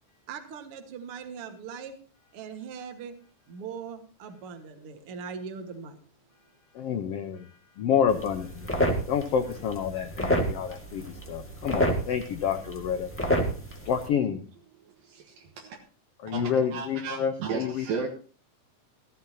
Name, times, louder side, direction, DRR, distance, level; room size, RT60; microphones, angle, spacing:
voice 1, 0.3-2.0 2.3-3.2 3.5-6.0, right 6 dB, 50° right, 6 dB, 2.1 m, -40 dB
voice 2, 6.7-7.5 7.8-8.7 9.1-13.1 13.8-14.4 16.2-18.1, left 8 dB, 80° left, 7 dB, 1.4 m, -28 dB
sound 1, 8.1-14.1, equal, 5° left, 0.9 m, -30 dB
voice 3, 15.0-15.8 16.3-18.1, right 5 dB, 80° right, 1 dB, 3.2 m, -34 dB
16.0 x 14.0 x 2.8 m, 0.39 s
omnidirectional pair, 4.0 m